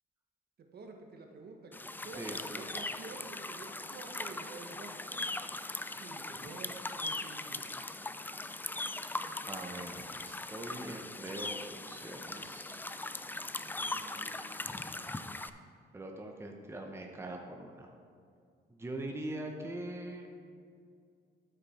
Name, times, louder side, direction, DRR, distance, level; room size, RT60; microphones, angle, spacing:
voice 1, 0.7-5.2 5.9-7.8, right 3 dB, 55° right, 3 dB, 1.2 m, -49 dB
sound 1, 1.7-15.5, left 2 dB, 10° left, 0.4 m, -40 dB
voice 2, 2.2-2.6 9.5-12.8 13.7-15.1 15.9-17.9 18.7-20.3, right 1 dB, 15° right, 2 dB, 0.9 m, -43 dB
12.5 x 5.2 x 4.3 m, 2.3 s
cardioid pair, 90°, 20 cm